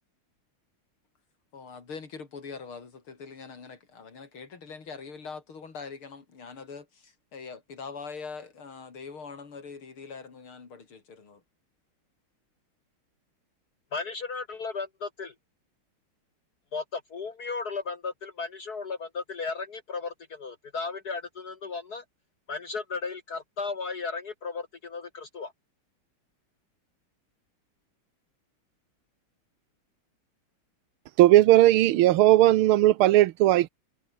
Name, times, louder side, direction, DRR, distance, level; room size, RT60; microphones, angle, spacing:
voice 1, 1.5-11.4, left 5 dB, 75° left, 4.3 m, -43 dB
voice 2, 13.9-15.3 16.7-22.0 22.5-25.5, left 4 dB, 50° left, 2.0 m, -35 dB
voice 3, 31.2-33.7, right 15 dB, 80° right, 1.6 m, -18 dB
omnidirectional pair, 2.3 m